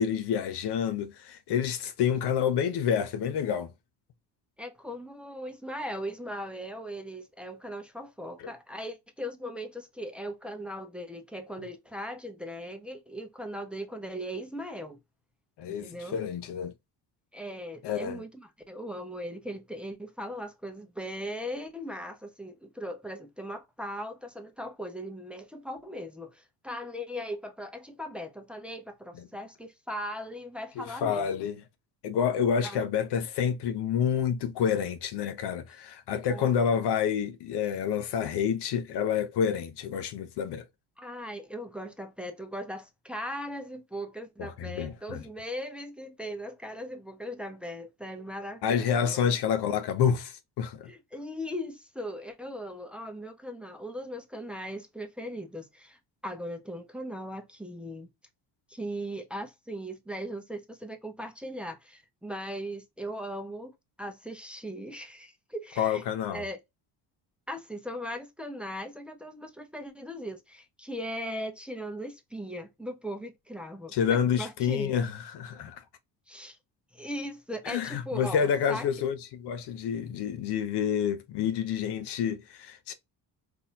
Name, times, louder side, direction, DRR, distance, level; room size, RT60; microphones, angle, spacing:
voice 1, 0.0-3.7 15.6-16.7 17.8-18.2 30.8-31.6 32.0-40.6 44.4-45.2 48.6-50.9 65.8-66.4 73.9-75.8 77.6-82.9, left 8 dB, 60° left, 0.8 m, -28 dB
voice 2, 4.6-15.0 15.7-16.2 17.3-31.5 32.6-32.9 36.3-36.7 41.0-49.4 50.9-58.1 58.7-66.0 66.3-66.6 67.5-74.9 76.3-76.6 76.9-78.9, equal, ahead, 0.9 m, -39 dB
4.0 x 2.9 x 2.4 m
supercardioid pair, 65°, 47 cm